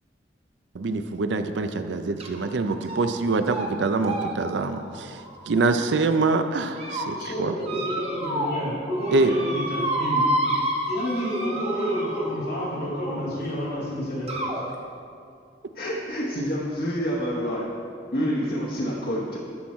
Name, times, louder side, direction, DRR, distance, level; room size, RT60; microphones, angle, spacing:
voice 1, 0.7-5.2 5.5-7.5 9.1-9.3, right 3 dB, 85° right, 9 dB, 0.5 m, -25 dB
sound 1, 2.2-2.5 2.8-3.2 3.5-3.7 4.0-6.0 6.5-7.1 7.6-8.6 8.9-12.5 13.5-13.6 14.3-14.6, right 1 dB, 35° right, 1.0 m, -30 dB
voice 2, 7.0-10.3 10.9-14.5, equal, 75° left, -6 dB, 2.3 m, -29 dB
voice 3, 15.7-17.7 18.1-19.4, equal, 55° left, -4 dB, 1.1 m, -27 dB
10.5 x 6.2 x 4.3 m, 2.4 s
head